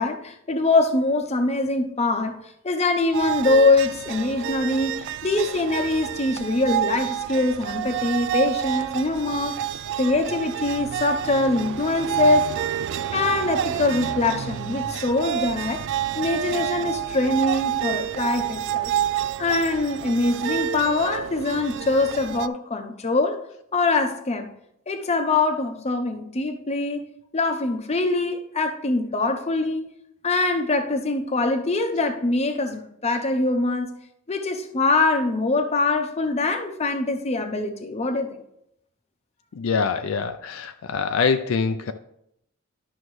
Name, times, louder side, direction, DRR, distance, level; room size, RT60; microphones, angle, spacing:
voice 1, 0.0-2.4 2.6-9.6 10.0-12.6 13.1-15.8 16.2-18.9 19.4-23.4 23.7-24.5 24.9-29.9 30.2-33.9 34.3-38.4, left 2 dB, 30° left, 0.7 m, -23 dB
sound 1, 3.1-22.5, right 10 dB, 60° right, 0.3 m, -29 dB
voice 2, 39.5-41.9, left 5 dB, 70° left, 0.4 m, -24 dB
11.0 x 6.3 x 3.2 m
head